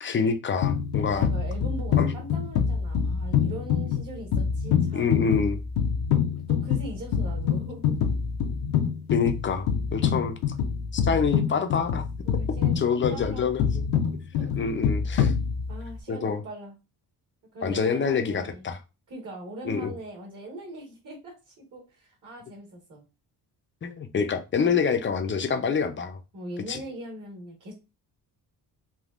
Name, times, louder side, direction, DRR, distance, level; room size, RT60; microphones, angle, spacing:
voice 1, 0.0-1.3 2.0-2.1 4.9-5.6 9.1-10.4 10.9-12.0 12.8-13.8 14.6-15.3 16.1-16.4 17.6-18.8 19.6-19.9 23.8-26.2 26.7-26.8, left 5 dB, 30° left, 8 dB, 0.5 m, -26 dB
sound 1, 0.6-16.0, left 7 dB, 80° left, 0.6 m, -26 dB
voice 2, 1.1-5.3 6.5-8.0 12.2-13.6 14.3-14.6 15.7-16.7 17.5-18.7 19.1-23.0 26.3-27.7, right 1 dB, 45° right, -1 dB, 1.5 m, -40 dB
3.5 x 2.3 x 2.4 m, 0.28 s
cardioid pair, 90°, 41 cm